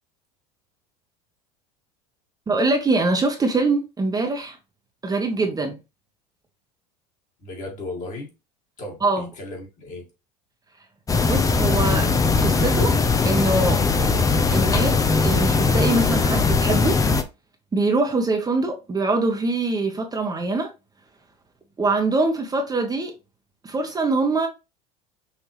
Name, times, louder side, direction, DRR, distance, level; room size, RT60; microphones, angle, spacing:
voice 1, 2.5-4.6 5.0-5.8 9.0-9.3 11.2-12.1 12.4-13.0 13.2-13.9 14.5-17.0 17.7-20.7 21.8-23.1 23.6-24.5, right 3 dB, 20° right, 1.0 m, -23 dB
voice 2, 7.4-8.3 8.8-10.1, left 2 dB, 40° left, 2.0 m, -35 dB
sound 1, 11.1-17.2, left 4 dB, 15° left, 0.6 m, -20 dB
5.7 x 2.8 x 3.1 m
hypercardioid pair, 85°, 20 cm